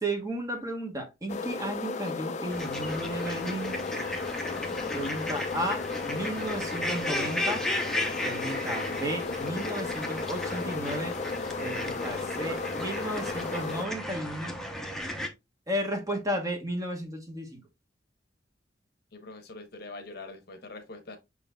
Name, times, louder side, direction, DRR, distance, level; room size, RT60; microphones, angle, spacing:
voice 1, 0.0-3.8 4.9-7.6 8.2-11.2 11.6-14.5 15.7-17.6, right 1 dB, 20° right, 1.0 m, -34 dB
sound 1, 1.3-13.9, left 4 dB, 40° left, 0.4 m, -35 dB
sound 2, 2.5-15.3, left 1 dB, 5° left, 0.7 m, -35 dB
voice 2, 19.1-21.2, left 2 dB, 60° left, 0.9 m, -44 dB
5.9 x 3.9 x 2.2 m
head